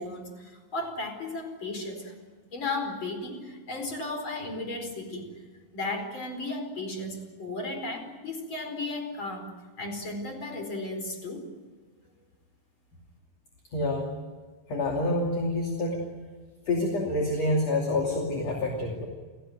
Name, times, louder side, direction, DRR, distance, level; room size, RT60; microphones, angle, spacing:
voice 1, 0.0-2.1 2.5-5.3 5.7-11.5, left 2 dB, 25° left, 5 dB, 4.7 m, -35 dB
voice 2, 13.7-14.1 14.7-16.0 16.7-19.1, left 2 dB, 40° left, 0 dB, 3.1 m, -27 dB
29.5 x 17.5 x 9.4 m, 1.4 s
omnidirectional pair, 5.9 m